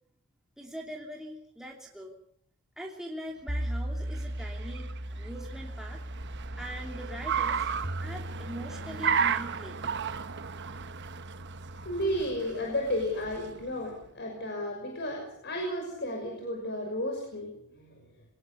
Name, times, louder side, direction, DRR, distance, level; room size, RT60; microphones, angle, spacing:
voice 1, 0.6-2.1 2.8-6.0 6.6-7.7 8.0-10.0, equal, ahead, -1 dB, 2.8 m, -42 dB
sound 1, 3.5-12.2, equal, 35° right, 3.8 m, -38 dB
Car, 3.7-14.0, right 7 dB, 55° right, 1.0 m, -35 dB
voice 2, 11.8-17.5 17.8-18.0, left 1 dB, 50° left, 2 dB, 6.0 m, -33 dB
24.5 x 19.0 x 7.0 m, 0.71 s
head